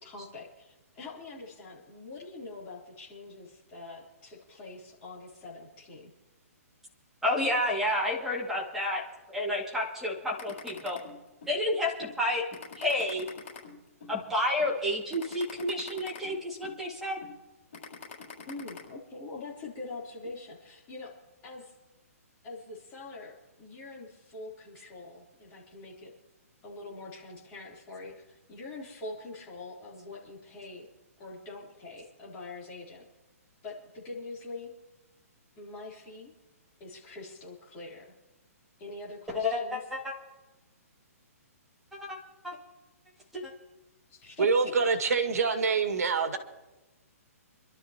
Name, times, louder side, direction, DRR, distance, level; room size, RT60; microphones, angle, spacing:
voice 1, 0.0-6.1 18.4-21.1 21.4-21.7 22.4-26.1 26.6-30.9 31.2-33.1 33.6-34.7 35.6-36.3 36.8-38.1 38.8-39.8 44.1-44.7, left 3 dB, 20° left, -5 dB, 3.4 m, -44 dB
voice 2, 7.2-9.0 9.3-11.0 11.5-12.4 12.8-13.3 14.1-17.2 39.3-40.1 42.0-42.2 42.4-42.6 43.3-43.4, left 1 dB, 5° right, -5 dB, 2.2 m, -30 dB
sound 1, 10.4-11.6 12.0-12.1 12.5-14.2 14.6-14.7 15.1-16.8 17.2-17.4 17.7-18.8, left 5 dB, 55° left, 6.8 m, -45 dB
voice 3, 44.4-46.4, right 5 dB, 75° right, 7 dB, 1.9 m, -25 dB
27.0 x 12.5 x 2.9 m, 1.1 s
hypercardioid pair, 175°, 8 cm